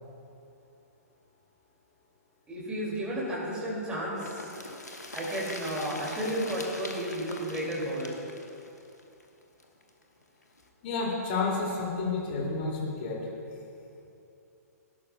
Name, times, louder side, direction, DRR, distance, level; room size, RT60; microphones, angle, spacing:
voice 1, 2.5-4.5 5.1-8.1, right 1 dB, 10° right, -6 dB, 2.3 m, -32 dB
sound 1, 4.2-9.9 10.2-10.3 10.6-10.7, left 2 dB, 80° left, 1.2 m, -42 dB
voice 2, 10.8-13.2, left 3 dB, 35° left, -2 dB, 2.5 m, -30 dB
16.5 x 11.5 x 2.2 m, 2.7 s
figure-of-eight pair, 120°, 9 cm